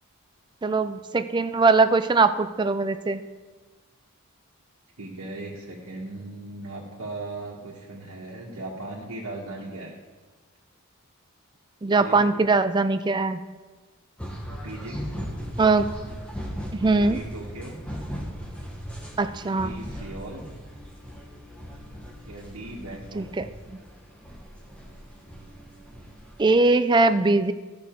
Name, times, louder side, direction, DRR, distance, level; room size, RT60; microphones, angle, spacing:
voice 1, 0.6-3.2 11.8-13.4 15.6-15.9 16.7-17.2 19.2-19.7 23.1-23.8 26.4-27.5, right 3 dB, 20° right, 10 dB, 0.3 m, -21 dB
voice 2, 5.0-9.9 12.0-12.3 14.5-15.2 17.0-17.8 19.6-20.4 22.2-23.3, right 2 dB, 80° right, -6 dB, 1.4 m, -38 dB
sound 1, 14.2-26.6, equal, 5° left, 1.2 m, -38 dB
12.0 x 6.0 x 4.5 m, 1.3 s
head